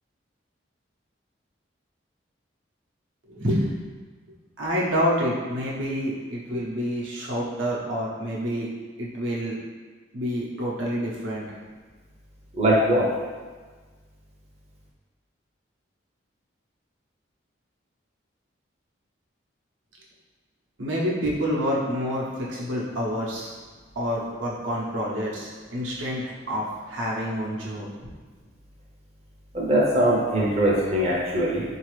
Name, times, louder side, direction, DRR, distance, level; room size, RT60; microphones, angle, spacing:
voice 1, 3.3-3.7 4.6-8.7 9.0-9.6 10.1-11.5 20.8-23.6 24.0-27.9, equal, 85° right, -4 dB, 0.9 m, -28 dB
voice 2, 12.5-13.1 29.5-31.6, right 1 dB, 35° right, -5 dB, 0.5 m, -21 dB
4.0 x 2.8 x 3.2 m, 1.4 s
head